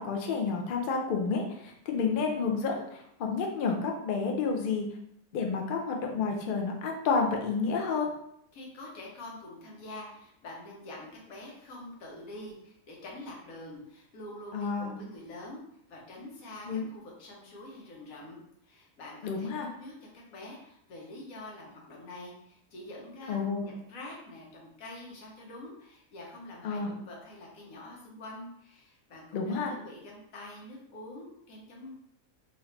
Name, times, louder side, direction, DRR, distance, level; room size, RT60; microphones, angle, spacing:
voice 1, 0.0-4.9 5.3-8.1 14.5-14.9 16.6-16.9 19.2-19.7 23.3-23.7 26.6-26.9 29.3-29.7, left 5 dB, 60° left, 2 dB, 0.5 m, -30 dB
voice 2, 8.5-15.6 15.9-18.4 18.6-31.9, left 1 dB, 85° left, -2 dB, 1.3 m, -46 dB
3.1 x 2.5 x 3.1 m, 0.74 s
omnidirectional pair, 1.4 m